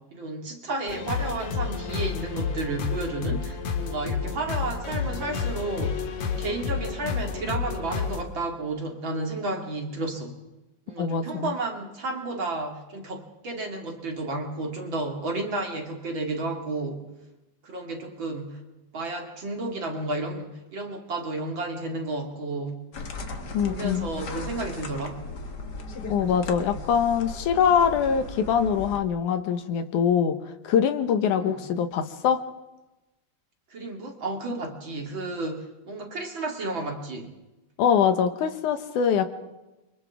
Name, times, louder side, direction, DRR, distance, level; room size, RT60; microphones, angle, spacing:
voice 1, 0.1-10.4 10.9-17.0 17.6-18.6 18.9-22.8 23.5-25.2 31.3-31.6 33.7-37.3, right 2 dB, 40° right, 1 dB, 2.8 m, -32 dB
sound 1, 0.9-8.2, left 6 dB, 75° left, 2.9 m, -30 dB
voice 2, 11.0-11.5 23.5-24.1 26.1-30.4 30.6-32.4 37.8-39.3, left 7 dB, 90° left, 9 dB, 2.6 m, -23 dB
sound 2, 22.9-29.0, left 3 dB, 45° left, 1.6 m, -37 dB
29.0 x 25.0 x 3.6 m, 1.0 s
omnidirectional pair, 3.5 m